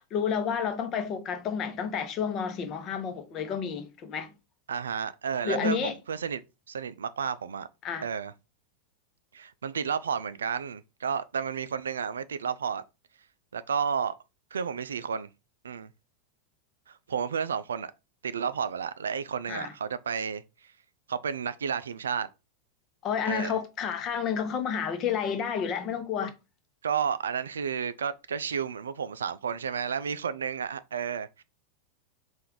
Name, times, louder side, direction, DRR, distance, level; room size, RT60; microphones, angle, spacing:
voice 1, 0.0-4.3 5.4-5.9 7.8-8.0 19.5-19.7 23.0-26.3, left 7 dB, 35° left, 0.8 m, -30 dB
voice 2, 4.7-6.4 6.7-7.7 8.0-8.3 9.3-12.8 13.5-14.1 14.5-15.3 15.6-15.9 16.9-17.9 18.2-20.4 21.1-22.3 23.2-23.6 26.8-31.4, right 7 dB, 70° right, 0.3 m, -31 dB
4.4 x 2.5 x 3.8 m
figure-of-eight pair, 90°, 0 cm